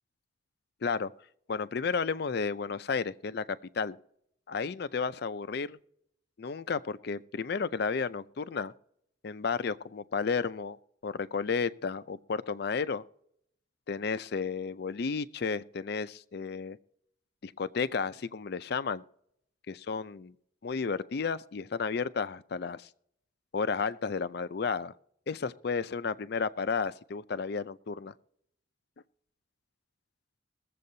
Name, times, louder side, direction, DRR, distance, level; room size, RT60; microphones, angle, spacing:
voice 1, 0.8-1.1 1.5-4.0 4.5-5.8 6.4-8.7 9.2-10.8 11.0-13.0 13.9-16.8 17.4-19.0 19.7-20.3 20.6-22.9 23.5-24.9 25.3-28.1, left 5 dB, 55° left, 0.4 m, -32 dB
22.0 x 7.6 x 2.7 m
head